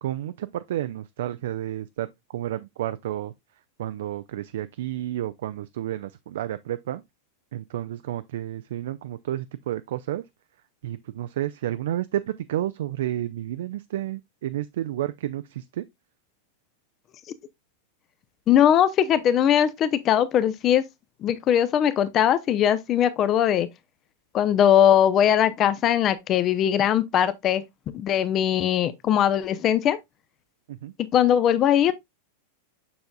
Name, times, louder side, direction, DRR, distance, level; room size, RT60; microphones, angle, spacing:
voice 1, 0.0-3.3 3.8-7.0 7.5-10.2 10.8-15.8 30.7-30.9, right 13 dB, 55° right, 0.3 m, -31 dB
voice 2, 18.5-20.8 21.2-23.7 24.3-27.6 27.9-30.0 31.1-31.9, left 10 dB, 30° left, 0.6 m, -20 dB
6.9 x 6.4 x 2.2 m
figure-of-eight pair, 90°, 0 cm